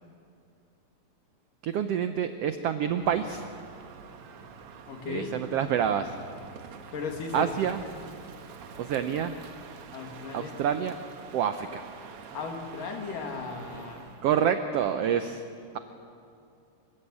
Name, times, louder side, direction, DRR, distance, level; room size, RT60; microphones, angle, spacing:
voice 1, 1.6-3.5 5.0-6.2 7.3-7.8 8.8-9.4 10.3-11.0 11.3-11.8 14.2-15.4, right 8 dB, 85° right, 9 dB, 1.3 m, -27 dB
Crow, 2.8-14.3, right 6 dB, 60° right, 1.7 m, -46 dB
voice 2, 4.9-5.3 6.9-7.5 9.9-10.6 12.3-14.2, left 5 dB, 85° left, 3 dB, 3.8 m, -36 dB
27.5 x 15.0 x 8.3 m, 2.6 s
omnidirectional pair, 3.7 m